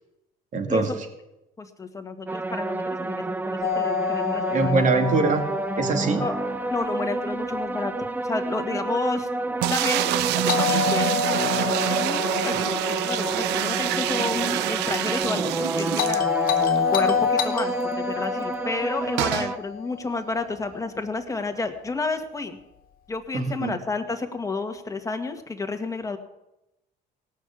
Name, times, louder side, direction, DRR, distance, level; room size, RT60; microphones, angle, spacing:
voice 1, 0.5-0.9 4.5-5.5 5.8-6.2 23.3-23.7, right 3 dB, 50° right, 5 dB, 2.5 m, -22 dB
voice 2, 1.6-4.7 6.2-6.4 6.7-7.9 8.2-9.3 9.7-11.1 11.9-22.6 23.1-26.2, left 3 dB, 20° left, 6 dB, 1.7 m, -31 dB
sound 1, 2.3-19.6, right 2 dB, 10° right, 0.5 m, -29 dB
Doorbell, 3.6-7.6 10.5-14.7 16.0-20.4, left 8 dB, 60° left, 1.9 m, -28 dB
sound 2, 9.6-16.8 17.1-17.2 17.4-17.5 19.2-19.5, right 14 dB, 85° right, 0.6 m, -26 dB
18.0 x 6.5 x 8.5 m, 0.93 s
cardioid pair, 110°, 17 cm